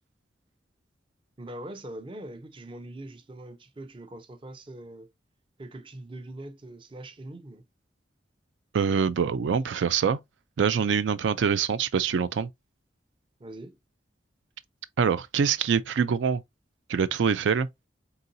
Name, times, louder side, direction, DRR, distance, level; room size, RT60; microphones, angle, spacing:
voice 1, 1.4-5.1 5.6-7.6 13.4-13.8, right 1 dB, 30° right, 0.5 m, -42 dB
voice 2, 8.7-10.2 10.6-12.5 15.0-16.4 16.9-17.7, right 6 dB, 85° right, 0.4 m, -24 dB
4.1 x 3.8 x 2.6 m
head